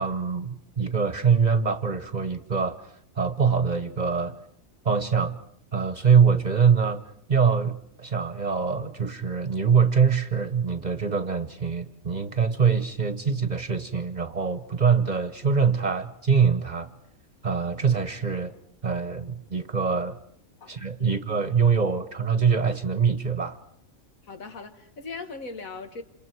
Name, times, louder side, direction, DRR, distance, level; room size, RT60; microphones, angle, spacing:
voice 1, 0.0-2.8 3.1-4.4 4.8-5.4 5.7-16.9 17.4-18.5 18.8-20.2 20.7-23.6, right 6 dB, 35° right, 1.1 m, -24 dB
voice 2, 24.3-26.0, left 4 dB, 85° left, 2.1 m, -39 dB
28.0 x 26.5 x 4.7 m
omnidirectional pair, 1.4 m